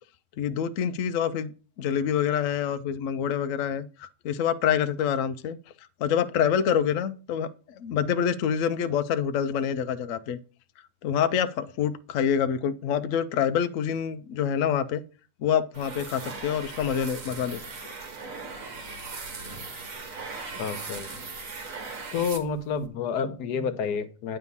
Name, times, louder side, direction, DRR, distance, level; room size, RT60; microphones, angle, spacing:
voice 1, 0.4-1.5 1.8-5.6 6.0-10.4 11.0-15.0 15.4-17.6, left 8 dB, 65° left, 0.9 m, -26 dB
sound 1, 15.7-22.9, right 4 dB, 60° right, 1.6 m, -39 dB
voice 2, 20.4-21.1 22.1-24.4, left 6 dB, 85° left, 1.4 m, -29 dB
9.4 x 3.5 x 7.0 m
omnidirectional pair, 1.7 m